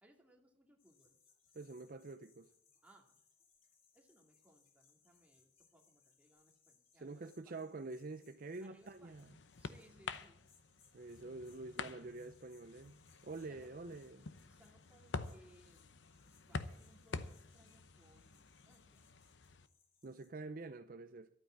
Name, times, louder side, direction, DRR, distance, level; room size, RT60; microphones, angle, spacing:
voice 1, 0.0-1.2 2.8-3.2 3.9-7.6 8.6-10.5 13.4-13.7 14.5-15.9 16.2-19.1, right 1 dB, 5° right, 2.2 m, -67 dB
sound 1, 0.8-20.3, left 6 dB, 50° left, 5.7 m, -73 dB
voice 2, 1.5-2.5 7.0-9.3 10.9-13.0 13.2-14.3 20.0-21.3, right 3 dB, 50° right, 0.6 m, -47 dB
Slapping a furry animal, 8.6-19.7, left 4 dB, 70° left, 0.8 m, -49 dB
12.5 x 8.8 x 7.6 m
head